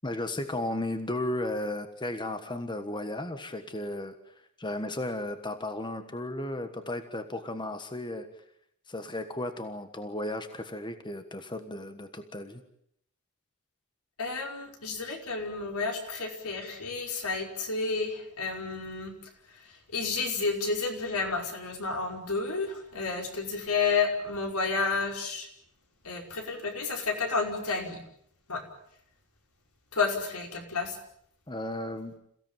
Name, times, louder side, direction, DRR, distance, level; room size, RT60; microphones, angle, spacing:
voice 1, 0.0-8.3 8.9-12.6 31.5-32.2, left 1 dB, 20° left, 8 dB, 1.4 m, -35 dB
voice 2, 14.2-19.1 19.9-25.5 26.0-28.0 28.5-28.6 29.9-31.0, left 4 dB, 80° left, 3 dB, 5.4 m, -31 dB
28.5 x 16.5 x 9.2 m, 0.72 s
head